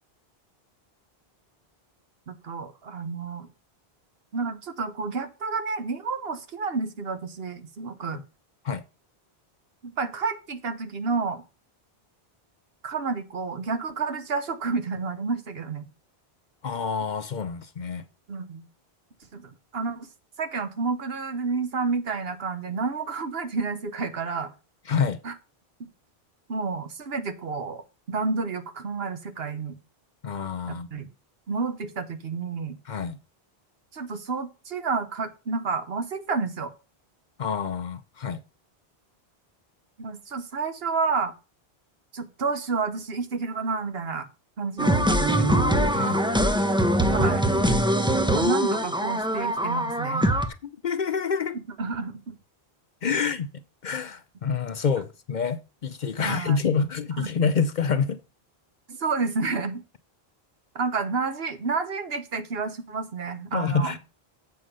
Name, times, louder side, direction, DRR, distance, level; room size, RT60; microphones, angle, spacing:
voice 1, 2.3-3.5 4.3-8.2 9.8-11.4 12.8-15.8 18.3-18.7 19.3-20.1 20.4-24.5 25.2-25.3 25.8-25.9 26.5-27.8 28.1-29.8 30.6-31.1 31.5-32.8 33.9-36.7 40.0-41.3 42.1-44.3 44.6-45.7 47.0-47.5 48.3-50.3 51.8-52.4 53.2-53.3 56.2-56.6 57.2-57.3 58.9-59.8 60.7-64.0, right 4 dB, 70° right, 1.3 m, -30 dB
voice 2, 16.6-18.0 24.9-25.2 30.2-30.9 32.9-33.2 37.4-38.4 45.9-46.2 50.6-51.6 53.0-58.2 63.5-64.0, left 6 dB, 55° left, 0.7 m, -27 dB
sound 1, 44.8-50.5, equal, 5° right, 0.8 m, -22 dB
7.9 x 6.2 x 5.3 m
omnidirectional pair, 1.1 m